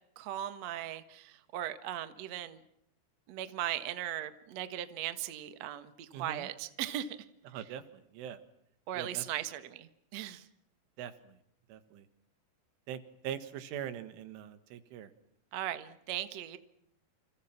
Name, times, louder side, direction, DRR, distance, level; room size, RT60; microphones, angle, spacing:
voice 1, 0.1-2.6 3.3-7.2 7.5-7.7 8.9-10.5 15.5-16.6, right 12 dB, 65° right, 11 dB, 1.7 m, -38 dB
voice 2, 6.1-6.5 7.5-8.4 9.0-9.3 11.0-11.4 11.7-12.1 12.9-15.1, right 9 dB, 80° right, 12 dB, 4.1 m, -42 dB
29.5 x 28.0 x 6.0 m, 0.74 s
omnidirectional pair, 5.5 m